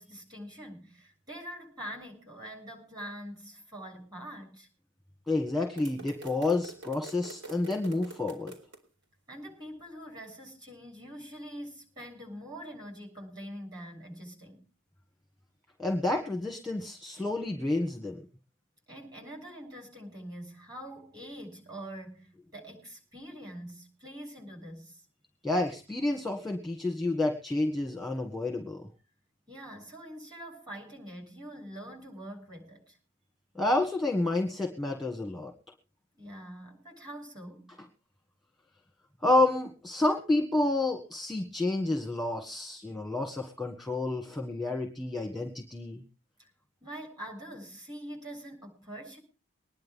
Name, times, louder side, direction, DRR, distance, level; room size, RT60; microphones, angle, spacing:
voice 1, 0.0-4.7 9.3-14.6 18.9-25.0 29.5-33.0 36.1-37.7 46.4-46.5 46.8-49.2, equal, 20° right, 7.1 m, -44 dB
voice 2, 5.3-8.5 15.8-18.2 25.4-28.9 33.6-35.5 39.2-46.0, left 2 dB, ahead, 1.7 m, -29 dB
sound 1, 5.8-8.8, right 2 dB, 70° right, 4.6 m, -46 dB
23.5 x 10.5 x 3.7 m
head